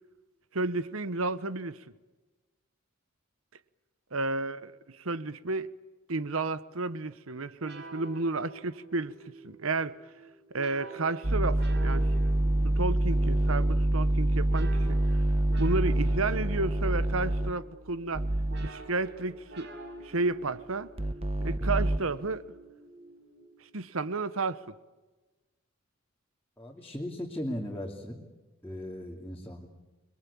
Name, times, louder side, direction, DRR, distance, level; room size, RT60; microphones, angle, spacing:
voice 1, 0.5-1.8 4.1-5.7 6.1-9.1 9.4-10.0 10.5-12.1 12.6-15.0 15.6-18.3 18.6-19.7 20.0-20.9 21.4-22.5 23.7-24.7, right 3 dB, 70° right, 1.1 m, -32 dB
sound 1, 7.6-23.8, right 3 dB, 55° right, 5.6 m, -48 dB
sound 2, 11.2-17.5 18.1-18.7 21.0-22.0, right 1 dB, 25° right, 1.1 m, -26 dB
voice 2, 26.6-28.2 28.6-29.7, equal, 10° left, 2.8 m, -37 dB
29.5 x 22.0 x 8.6 m
head